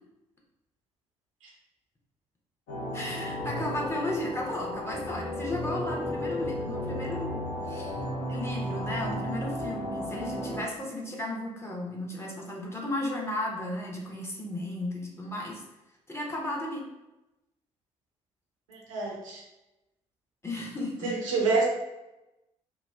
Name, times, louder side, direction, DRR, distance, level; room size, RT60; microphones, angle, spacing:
sound 1, 2.7-10.6, left 1 dB, 60° left, 0.8 m, -34 dB
voice 1, 2.9-8.0 8.3-15.6 16.1-16.8 20.4-21.1, left 1 dB, 15° left, -2 dB, 0.7 m, -34 dB
voice 2, 18.7-19.4 21.0-21.6, right 4 dB, 80° right, -2 dB, 0.5 m, -27 dB
2.9 x 2.1 x 2.3 m, 0.97 s
figure-of-eight pair, 40°, 16 cm